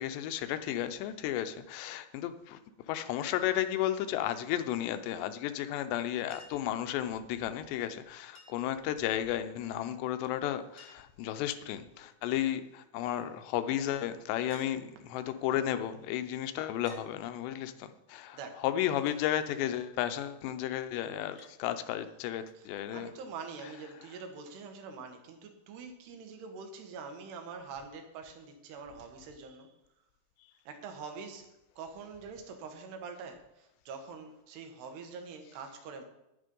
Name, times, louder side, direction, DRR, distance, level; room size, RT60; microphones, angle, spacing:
voice 1, 0.0-2.6 2.9-23.1, left 11 dB, 90° left, 10 dB, 3.0 m, -33 dB
Chink clink, 6.3-6.7 8.3-8.8 10.1-10.2 10.4-10.5 10.8-11.2 12.0-12.4 14.5-14.7 15.8-15.9 16.9-17.1 19.1-19.3 21.4-21.6 23.0-23.1, left 1 dB, 15° left, 1.7 m, -54 dB
voice 2, 18.3-18.6 22.6-29.7 30.7-31.5 31.8-36.0, right 5 dB, 75° right, 5 dB, 3.4 m, -45 dB
10.5 x 10.0 x 5.4 m, 0.91 s
omnidirectional pair, 4.9 m